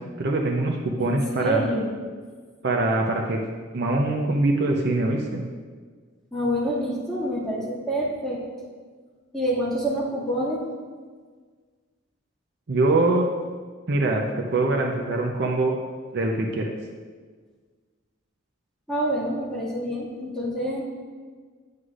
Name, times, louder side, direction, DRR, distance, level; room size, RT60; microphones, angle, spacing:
voice 1, 0.2-1.6 2.6-3.4 3.7-5.4 12.7-13.3 13.9-15.8 16.1-16.7, right 2 dB, 55° right, 1 dB, 0.7 m, -23 dB
voice 2, 1.0-2.0 6.3-8.4 9.3-10.6 18.9-20.8, equal, 5° left, -8 dB, 2.0 m, -27 dB
9.5 x 8.0 x 2.5 m, 1.5 s
head